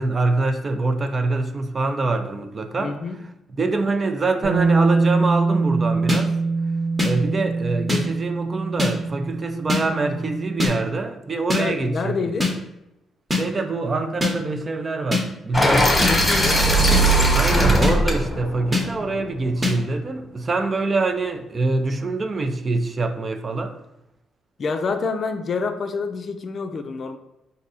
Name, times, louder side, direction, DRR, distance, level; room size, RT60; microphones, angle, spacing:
voice 1, 0.0-3.0 3.6-6.3 7.0-12.3 13.3-16.1 17.3-23.8, right 3 dB, 35° right, 0.5 m, -25 dB
voice 2, 2.8-3.2 11.5-12.5 15.6-16.6 24.6-27.2, left 4 dB, 50° left, 0.4 m, -27 dB
Bass guitar, 4.4-10.7, right 3 dB, 75° right, 1.5 m, -23 dB
sound 1, 6.1-6.2 7.0-7.1 7.9-8.0 8.8-8.9 9.7-9.8 10.6-10.7 11.5-11.6 12.4-12.5 13.3-13.4 14.2-14.3 15.1-15.2 16.0-16.1 16.9-17.0 17.8-17.9 18.7-18.8 19.6-19.7, left 3 dB, 20° right, 1.0 m, -21 dB
sound 2, 15.5-19.6, right 1 dB, 15° left, 1.1 m, -19 dB
4.3 x 2.7 x 4.0 m
cardioid pair, 90°, 0 cm